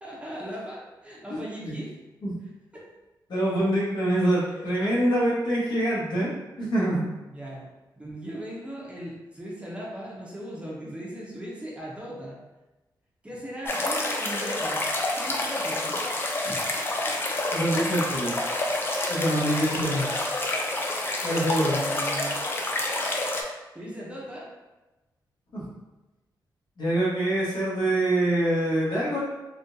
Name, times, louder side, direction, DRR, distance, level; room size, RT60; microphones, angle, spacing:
voice 1, 0.0-1.9 2.7-2.9 4.2-4.7 7.3-7.7 8.0-12.4 13.2-14.8 15.2-16.0 20.0-20.2 21.3-22.4 23.7-24.5, right 1 dB, 15° right, -5 dB, 0.7 m, -38 dB
voice 2, 1.3-1.8 2.2-2.3 3.3-6.3 6.6-7.0 16.4-16.5 17.5-18.3 19.1-20.0 21.2-21.8 25.5-25.7 26.8-29.2, right 1 dB, 70° left, -6 dB, 1.2 m, -25 dB
sound 1, 13.7-23.4, left 2 dB, 30° left, 0.4 m, -28 dB
3.7 x 2.4 x 2.6 m, 1.1 s
wide cardioid pair, 145°, 8 cm